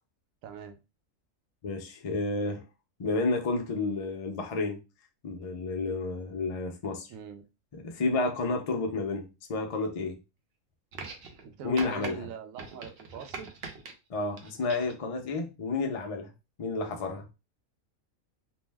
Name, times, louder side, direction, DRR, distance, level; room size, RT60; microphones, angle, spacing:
voice 1, 0.4-0.8 7.1-7.4 11.4-13.5, right 5 dB, 80° right, 7 dB, 1.0 m, -42 dB
voice 2, 1.6-2.6 3.0-4.8 5.2-7.1 7.7-10.2 11.6-12.3 14.1-16.3 16.6-17.3, left 3 dB, 70° left, 3 dB, 0.3 m, -31 dB
sound 1, 10.9-11.5 11.8-12.1 12.6-13.9 14.4-15.0 16.0-16.1, right 4 dB, 60° right, 0.7 m, -41 dB
2.6 x 2.1 x 3.3 m, 0.28 s
omnidirectional pair, 1.4 m